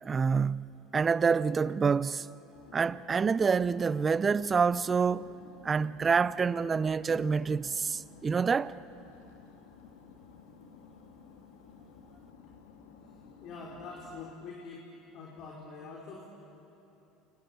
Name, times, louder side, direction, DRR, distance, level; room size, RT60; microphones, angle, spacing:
voice 1, 0.0-2.3 2.7-5.3 5.6-8.7, right 5 dB, 25° right, 0.6 m, -27 dB
sound 1, 2.5-14.3, left 5 dB, 85° left, 2.7 m, -54 dB
voice 2, 13.0-14.9 15.1-16.2, left 4 dB, 55° left, 4.5 m, -45 dB
28.5 x 24.0 x 8.7 m
supercardioid pair, 105°, 0 cm